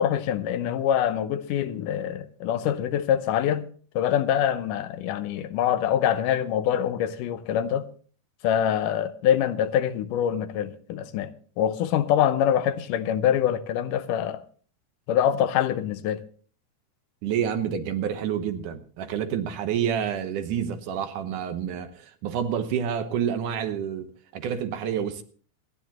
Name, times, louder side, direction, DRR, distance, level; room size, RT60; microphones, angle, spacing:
voice 1, 0.0-3.7 4.0-7.8 8.4-11.3 11.6-14.4 15.1-16.2, left 10 dB, 80° left, 2.3 m, -24 dB
voice 2, 17.2-24.1 24.3-25.2, right 8 dB, 75° right, 2.5 m, -28 dB
26.5 x 10.0 x 3.0 m
omnidirectional pair, 3.8 m